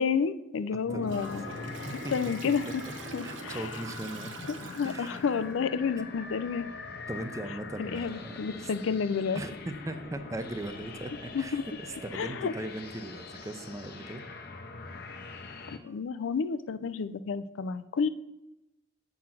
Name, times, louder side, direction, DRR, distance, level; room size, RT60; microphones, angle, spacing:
voice 1, 0.0-1.4 2.1-2.8 3.1-3.7 4.5-6.7 7.8-9.4 11.3-11.7 12.1-12.5 15.7-18.1, left 6 dB, 85° left, 14 dB, 0.4 m, -30 dB
sound 1, 0.9-15.8, left 4 dB, 55° left, 0.7 m, -43 dB
voice 2, 0.9-1.4 1.7-2.1 2.6-2.7 3.2-4.3 4.6-5.2 7.1-8.7 9.3-11.6 12.0-14.2, right 1 dB, 15° right, 8 dB, 0.5 m, -39 dB
Toilet flush, 1.0-5.4, right 4 dB, 70° right, 0.7 m, -45 dB
7.5 x 4.0 x 5.8 m, 0.95 s
head